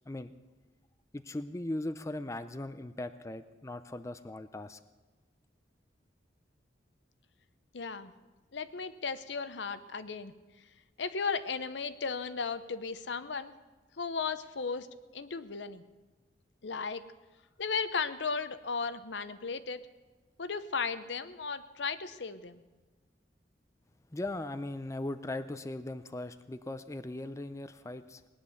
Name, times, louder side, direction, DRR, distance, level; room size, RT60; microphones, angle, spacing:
voice 1, 1.1-4.8 24.1-28.2, left 1 dB, 15° left, 11 dB, 0.5 m, -39 dB
voice 2, 7.7-8.1 8.5-10.3 11.0-13.5 14.0-14.9 15.1-15.8 16.6-17.0 17.6-19.9 20.4-22.6, left 5 dB, 75° left, 12 dB, 0.8 m, -35 dB
19.5 x 10.0 x 7.1 m, 1.3 s
head